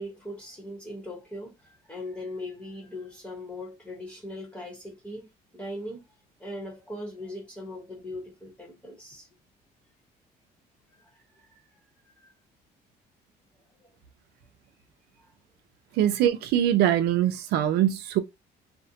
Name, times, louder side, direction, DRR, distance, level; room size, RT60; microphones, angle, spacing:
voice 1, 0.0-6.0 6.4-9.3 10.9-12.1 13.8-13.9 15.2-15.3, left 1 dB, 5° left, 1.0 m, -40 dB
voice 2, 16.0-18.2, right 11 dB, 80° right, 0.5 m, -23 dB
2.6 x 2.1 x 2.7 m
cardioid pair, 110°, 17 cm